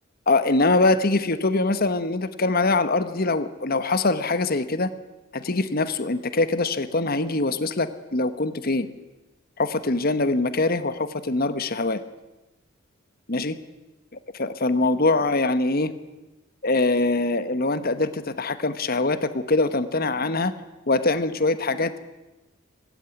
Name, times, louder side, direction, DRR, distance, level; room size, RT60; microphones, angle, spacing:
voice 1, 0.3-4.9 5.3-8.9 9.6-12.0 13.3-13.5 14.3-15.9 16.6-20.5 20.9-22.0, left 2 dB, 50° left, 12 dB, 1.2 m, -23 dB
19.5 x 16.5 x 9.5 m, 1.1 s
head